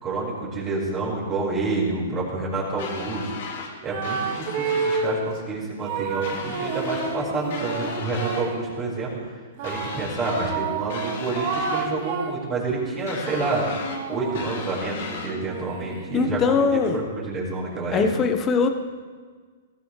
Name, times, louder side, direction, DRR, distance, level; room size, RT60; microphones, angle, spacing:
voice 1, 0.0-3.3 3.8-9.1 9.6-13.7 14.1-18.0, right 3 dB, 25° right, -6 dB, 5.3 m, -28 dB
sound 1, 2.8-3.7 4.0-5.1 6.2-7.2 7.5-8.5 9.6-10.6 10.9-11.9 13.1-14.0 14.3-15.3, left 5 dB, 60° left, 2.4 m, -36 dB
sound 2, 3.8-5.3 5.8-8.7 9.6-12.5 13.0-16.6, right 5 dB, 50° right, 2.0 m, -30 dB
voice 2, 16.1-17.0 17.9-18.7, left 5 dB, 25° left, 7 dB, 1.3 m, -21 dB
19.5 x 14.0 x 3.4 m, 1.6 s
hypercardioid pair, 125°, 0 cm